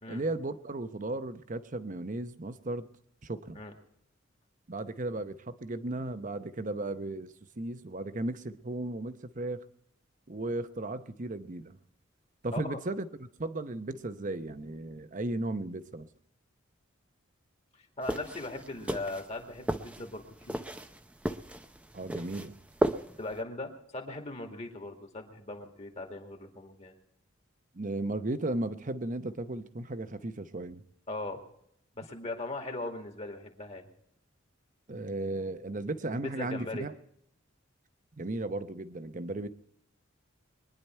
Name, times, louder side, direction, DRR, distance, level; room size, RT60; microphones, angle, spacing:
voice 1, 0.1-2.9 3.2-3.6 4.7-9.7 10.3-11.8 12.4-16.1 21.9-22.6 27.7-30.8 34.9-36.9 38.2-39.5, right 2 dB, 40° right, 11 dB, 0.8 m, -35 dB
voice 2, 17.7-20.6 23.2-26.9 31.1-31.4 32.0-33.8 36.1-36.9, left 2 dB, 35° left, 3 dB, 2.2 m, -39 dB
sound 1, 18.0-23.4, right 1 dB, 5° right, 0.6 m, -35 dB
23.0 x 10.5 x 4.5 m, 0.70 s
head